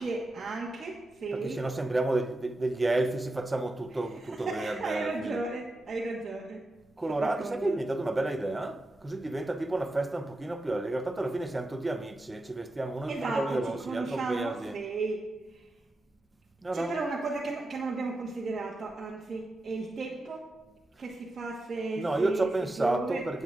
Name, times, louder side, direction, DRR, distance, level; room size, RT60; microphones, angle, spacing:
voice 1, 0.0-1.6 4.1-6.6 7.1-7.8 13.1-15.2 15.5-15.6 16.7-20.4 21.0-23.2, right 3 dB, 40° right, 1.4 m, -34 dB
voice 2, 1.3-5.4 7.0-14.9 16.6-17.0 22.0-23.4, right 2 dB, 20° right, 0.7 m, -31 dB
18.0 x 7.9 x 2.5 m
cardioid pair, 90°, 0 cm